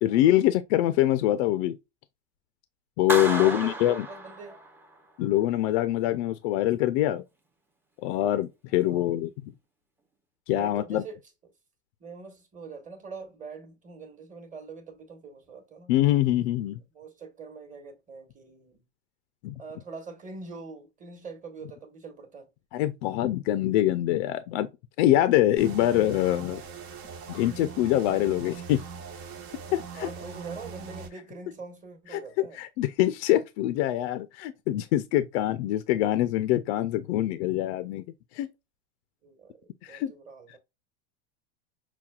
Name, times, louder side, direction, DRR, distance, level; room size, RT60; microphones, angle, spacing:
voice 1, 0.0-1.8 3.0-4.1 5.2-7.2 8.0-9.3 10.5-11.0 15.9-16.8 19.4-19.6 22.7-24.7 25.0-26.6 27.3-28.8 29.7-30.1 32.1-38.0 38.3-38.5 39.8-40.1, left 14 dB, 70° left, 0.5 m, -24 dB
Clapping, 3.1-5.0, right 2 dB, 5° right, 0.6 m, -32 dB
voice 2, 3.2-4.6 8.7-9.1 10.5-11.2 12.0-16.0 16.8-18.9 19.6-22.5 30.0-32.6 39.2-40.6, right 4 dB, 20° right, 1.2 m, -43 dB
sound 1, 25.6-31.1, right 6 dB, 55° right, 1.1 m, -41 dB
5.8 x 2.3 x 2.3 m
supercardioid pair, 115°, 35 cm